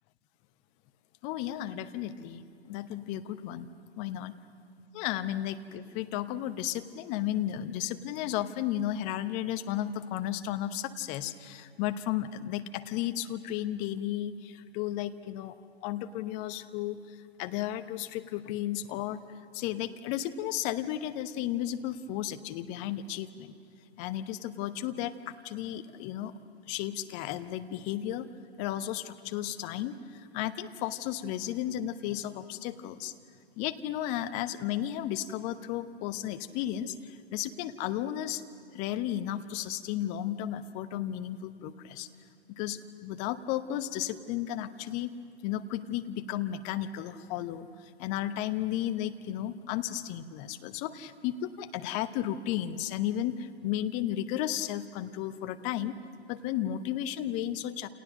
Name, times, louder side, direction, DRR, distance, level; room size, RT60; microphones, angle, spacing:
voice 1, 1.2-3.7 4.0-4.3 4.9-15.5 15.8-17.0 17.4-19.2 19.5-23.5 24.0-26.3 26.7-28.3 28.6-33.1 33.6-38.4 38.7-42.1 42.6-45.1 45.4-47.7 48.0-55.9 56.3-57.9, left 12 dB, 20° left, 10 dB, 0.9 m, -34 dB
29.0 x 29.0 x 6.5 m, 2.3 s
figure-of-eight pair, 120°, 32 cm